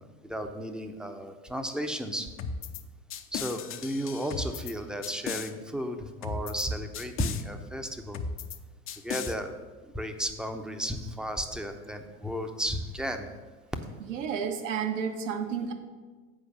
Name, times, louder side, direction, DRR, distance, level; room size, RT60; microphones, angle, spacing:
voice 1, 0.3-2.3 3.3-8.2 9.0-9.5 9.9-13.2, equal, ahead, 6 dB, 0.7 m, -33 dB
sound 1, 2.4-2.8 3.1-4.7 5.0-5.5 6.2-6.7 6.9-7.4 8.1-8.6 8.9-9.3, left 6 dB, 30° left, 0.7 m, -36 dB
voice 2, 14.1-15.7, right 7 dB, 65° right, 6 dB, 1.3 m, -31 dB
8.0 x 4.9 x 6.5 m, 1.3 s
figure-of-eight pair, 80°, 42 cm